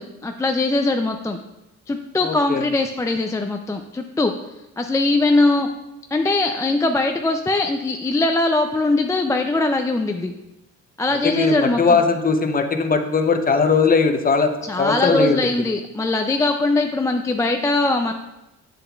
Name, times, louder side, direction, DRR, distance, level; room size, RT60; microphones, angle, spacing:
voice 1, 0.0-1.4 1.9-4.3 4.8-5.7 6.1-10.3 11.0-12.0 14.7-18.1, left 2 dB, 10° left, 4 dB, 0.3 m, -21 dB
voice 2, 2.2-2.6 11.2-14.5 14.8-15.4, left 4 dB, 30° left, 6 dB, 0.7 m, -19 dB
7.6 x 6.8 x 2.3 m, 0.95 s
cardioid pair, 90°, 30 cm